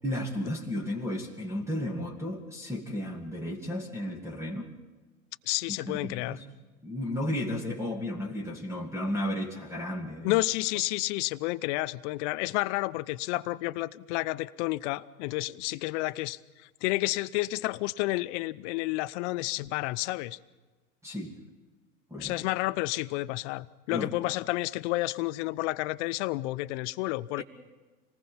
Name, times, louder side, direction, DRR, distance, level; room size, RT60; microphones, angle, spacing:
voice 1, 0.0-4.7 5.7-6.4 6.8-10.4 21.0-21.4 22.1-22.3 23.9-24.1 27.4-27.5, left 1 dB, 5° right, 0 dB, 2.6 m, -33 dB
voice 2, 5.5-6.4 10.2-16.4 16.8-20.4 22.1-27.4, left 19 dB, 50° left, 15 dB, 0.8 m, -30 dB
26.5 x 19.5 x 5.6 m, 1.3 s
hypercardioid pair, 95°, 45 cm